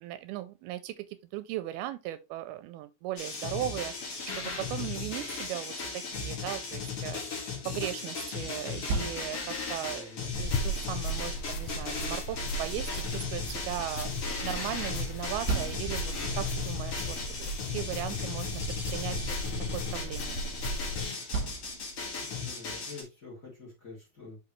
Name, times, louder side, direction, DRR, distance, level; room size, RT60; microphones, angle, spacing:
voice 1, 0.0-18.6 18.9-20.4, right 13 dB, 80° right, 2.4 m, -38 dB
sound 1, 3.2-23.0, left 4 dB, 45° left, 2.5 m, -36 dB
sound 2, 8.6-22.5, right 2 dB, 45° right, 1.6 m, -42 dB
voice 2, 9.9-10.4 22.2-24.4, left 3 dB, 25° left, 2.7 m, -47 dB
sound 3, 10.3-21.0, equal, 75° left, 1.9 m, -36 dB
5.9 x 5.5 x 3.1 m
omnidirectional pair, 4.5 m